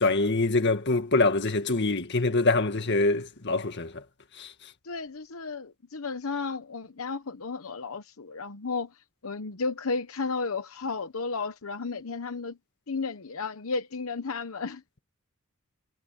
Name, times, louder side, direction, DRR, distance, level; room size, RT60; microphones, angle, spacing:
voice 1, 0.0-4.0 4.4-4.5, left 3 dB, 55° left, 1.9 m, -24 dB
voice 2, 4.8-8.9 9.2-12.6 12.9-14.8, left 4 dB, 85° left, 1.0 m, -33 dB
head